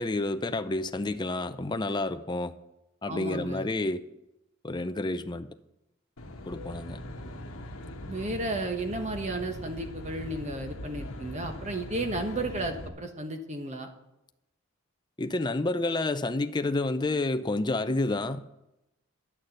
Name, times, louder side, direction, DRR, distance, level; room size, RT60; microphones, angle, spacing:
voice 1, 0.0-2.5 3.0-4.0 4.6-5.5 6.5-7.0 15.2-18.5, left 2 dB, 20° left, 0.5 m, -29 dB
voice 2, 3.1-3.7 8.1-13.9, right 2 dB, 35° right, 1.3 m, -33 dB
Aircraft, 6.2-12.9, left 1 dB, 85° left, 1.2 m, -41 dB
11.0 x 6.5 x 7.9 m
head